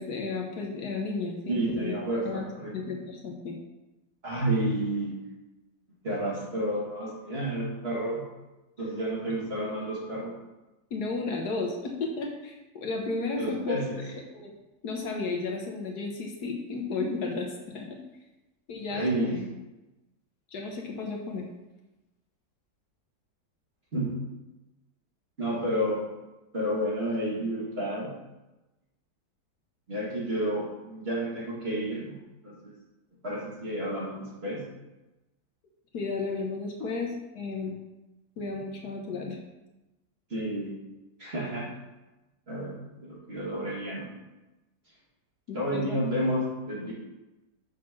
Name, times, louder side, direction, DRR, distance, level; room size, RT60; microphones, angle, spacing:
voice 1, 0.0-1.9 2.2-2.5 2.7-3.6 10.9-13.8 14.3-14.5 14.8-18.0 18.7-19.3 20.5-21.5 35.9-37.1 37.3-37.7 38.4-39.4 45.5-46.0, left 3 dB, 65° left, 0 dB, 1.4 m, -33 dB
voice 2, 1.5-2.7 4.2-5.2 6.0-8.2 8.8-10.3 13.4-14.0 18.9-19.4 23.9-24.1 25.4-26.0 26.5-28.1 29.9-32.1 32.4-32.7 33.2-34.6 36.8-36.9 40.3-40.8 41.2-41.7 42.5-44.1 45.5-46.9, right 1 dB, 35° right, -5 dB, 2.2 m, -30 dB
6.2 x 4.3 x 6.0 m, 1.0 s
omnidirectional pair, 1.9 m